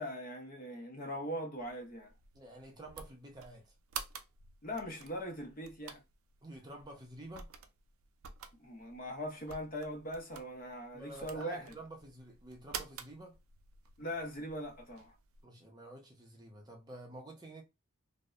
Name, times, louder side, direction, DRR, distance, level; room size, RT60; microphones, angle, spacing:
voice 1, 0.0-2.1 4.6-6.0 8.6-11.6 14.0-15.2, equal, 40° left, 0.7 m, -41 dB
sound 1, 1.6-15.4, right 7 dB, 65° right, 0.4 m, -50 dB
voice 2, 2.3-3.7 6.4-7.5 10.9-13.3 15.4-17.6, right 1 dB, 20° right, 0.6 m, -50 dB
2.6 x 2.0 x 2.3 m
head